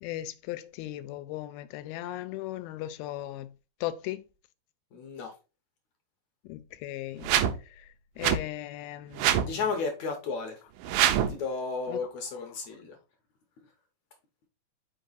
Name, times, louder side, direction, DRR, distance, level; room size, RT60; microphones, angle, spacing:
voice 1, 0.0-3.5 3.8-4.2 6.5-7.3 7.8-7.9 8.2-9.6 10.9-11.1 11.9-12.0, left 14 dB, 85° left, 2.5 m, -37 dB
voice 2, 4.9-5.3 9.4-10.6 11.3-13.0, left 4 dB, 70° left, 1.8 m, -33 dB
sound 1, 7.2-7.6 8.2-8.4 9.2-9.5 10.8-11.4, right 10 dB, 85° right, 2.4 m, -24 dB
5.8 x 4.6 x 3.9 m
omnidirectional pair, 4.3 m